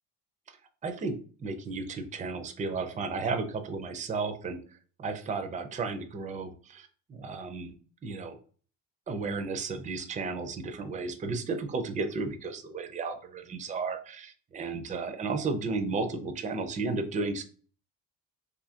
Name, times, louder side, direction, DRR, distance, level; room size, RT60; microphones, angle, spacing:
voice 1, 0.8-1.1 1.4-7.7 8.0-8.4 9.1-17.4, right 4 dB, 20° right, 6 dB, 0.5 m, -33 dB
2.7 x 2.5 x 2.7 m, 0.41 s
supercardioid pair, 80°, 38 cm